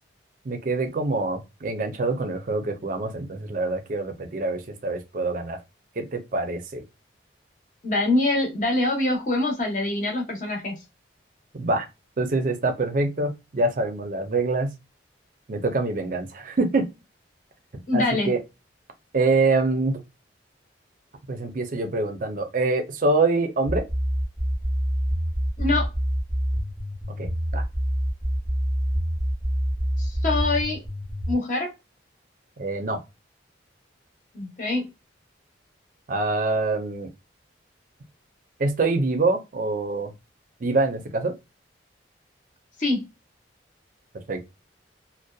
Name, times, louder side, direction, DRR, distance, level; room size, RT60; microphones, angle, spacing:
voice 1, 0.4-5.6 6.0-6.8 11.5-11.9 12.2-14.7 15.5-16.9 17.9-18.4 19.1-20.0 21.3-23.8 27.2-27.6 32.6-33.0 36.1-37.1 38.6-40.1 40.6-41.3 44.1-44.5, right 3 dB, 45° right, 0.5 m, -25 dB
voice 2, 7.8-10.7 17.9-18.3 25.6-25.9 30.0-30.8 31.3-31.7 34.3-34.9 42.8-43.0, left 2 dB, 40° left, 0.8 m, -24 dB
sound 1, 23.7-31.3, equal, ahead, 0.6 m, -26 dB
2.6 x 2.1 x 2.2 m
head